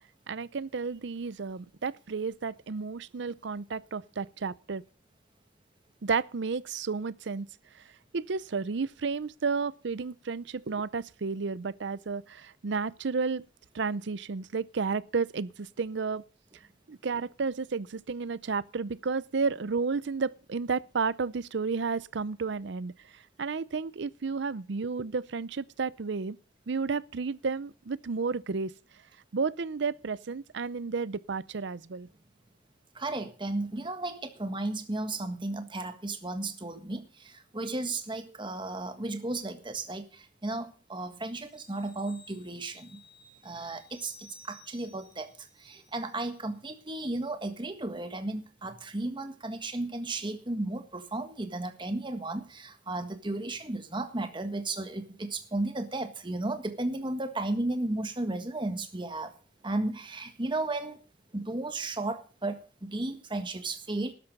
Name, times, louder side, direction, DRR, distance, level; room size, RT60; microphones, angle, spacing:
voice 1, 0.3-4.8 6.0-7.5 8.1-13.4 13.7-16.2 16.9-22.9 23.4-26.4 26.7-28.7 29.3-32.1, right 4 dB, 65° right, 0.6 m, -32 dB
voice 2, 32.9-43.0 43.4-59.3 59.6-61.0 61.3-64.1, right 2 dB, 25° right, 1.6 m, -34 dB
sound 1, 41.4-46.5 46.9-47.0, left 2 dB, 5° right, 3.8 m, -56 dB
13.0 x 11.5 x 5.4 m
head